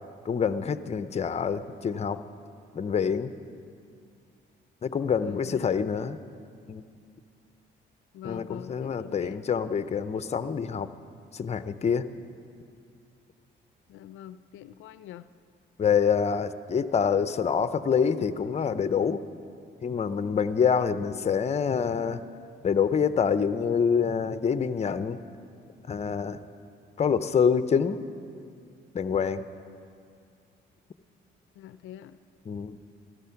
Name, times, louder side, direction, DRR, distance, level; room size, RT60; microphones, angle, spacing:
voice 1, 0.2-2.2 2.7-3.3 4.8-6.2 6.7-6.8 8.2-10.9 11.3-12.1 15.8-19.2 19.8-22.2 22.6-25.2 25.9-26.4 27.0-28.0 28.9-29.4 32.5-32.8, left 6 dB, 35° left, 12 dB, 0.6 m, -26 dB
voice 2, 5.2-5.6 8.1-9.4 13.9-15.3 31.6-32.2, left 11 dB, 85° left, 13 dB, 0.5 m, -44 dB
16.0 x 12.5 x 5.8 m, 2.4 s
cardioid pair, 90°, 20 cm